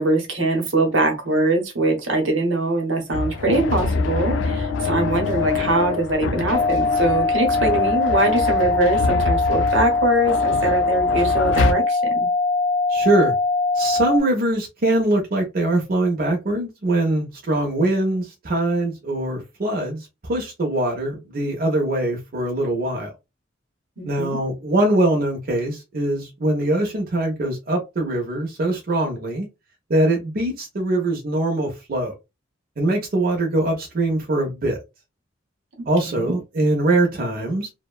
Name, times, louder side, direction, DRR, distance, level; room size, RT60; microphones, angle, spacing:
voice 1, 0.0-12.3 24.0-24.4 35.8-36.4, right 2 dB, 85° right, 0.9 m, -22 dB
sound 1, 3.1-11.7, left 4 dB, 75° left, 0.4 m, -25 dB
sound 2, 6.5-14.2, left 3 dB, 25° left, 0.5 m, -21 dB
voice 2, 12.9-13.3 13.7-23.1 24.0-29.5 29.9-32.1 32.8-34.8 35.9-37.7, right 1 dB, 50° right, 0.6 m, -22 dB
2.7 x 2.1 x 2.2 m
head